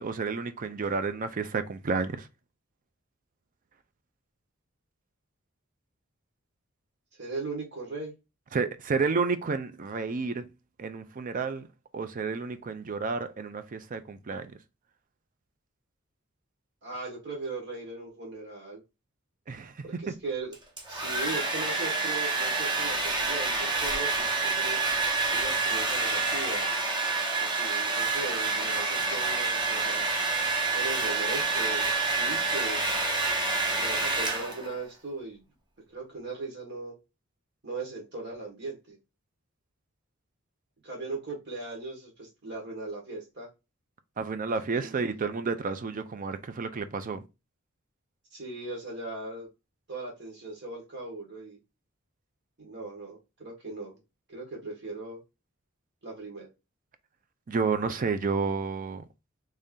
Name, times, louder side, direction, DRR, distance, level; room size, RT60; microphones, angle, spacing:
voice 1, 0.0-2.3 8.5-10.5 10.8-11.7 11.9-14.5 19.5-19.7 20.1-20.2 44.2-47.2 57.5-59.0, right 4 dB, 40° right, 0.4 m, -30 dB
voice 2, 7.2-8.1 16.8-18.8 19.8-20.5 20.9-24.8 25.3-26.7 27.4-30.0 30.7-32.9 33.7-35.4 35.9-36.9 37.6-39.0 40.8-43.5 44.8-44.9 48.3-49.5 49.9-51.6 52.6-53.9 54.3-55.2 56.0-56.5, right 3 dB, 55° right, 1.5 m, -38 dB
Domestic sounds home sounds, 20.5-34.8, right 3 dB, 25° right, 0.8 m, -28 dB
3.2 x 2.7 x 3.7 m
head